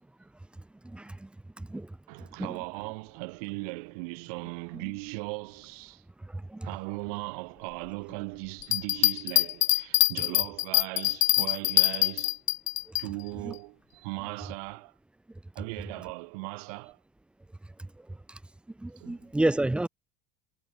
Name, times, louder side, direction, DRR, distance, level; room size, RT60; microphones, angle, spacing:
voice 1, 0.8-1.3 1.6-2.0 2.4-2.6 4.7-4.8 6.2-6.7 12.9-13.0 13.4-13.5 17.8-18.4 18.8-19.9, right 1 dB, 5° right, 2.1 m, -31 dB
voice 2, 2.1-6.0 6.6-12.4 13.0-14.9 15.5-17.0 19.0-19.3, right 30 dB, 80° right, 2.8 m, -38 dB
Bell, 8.6-13.0 13.5-13.6, left 19 dB, 45° left, 0.6 m, -24 dB
cardioid pair, 150°, 19 cm